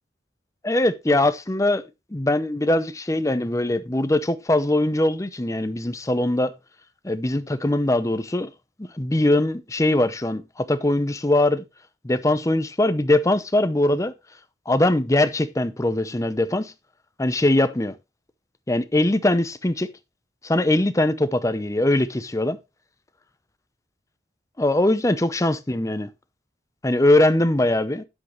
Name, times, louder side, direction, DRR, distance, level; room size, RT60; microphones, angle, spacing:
voice 1, 0.6-1.8 2.1-6.5 7.0-8.5 8.9-11.6 12.0-14.1 14.7-16.7 17.2-17.9 18.7-19.9 20.4-22.6 24.6-26.1 26.8-28.0, left 1 dB, 15° left, 0.6 m, -21 dB
9.4 x 8.1 x 3.1 m
head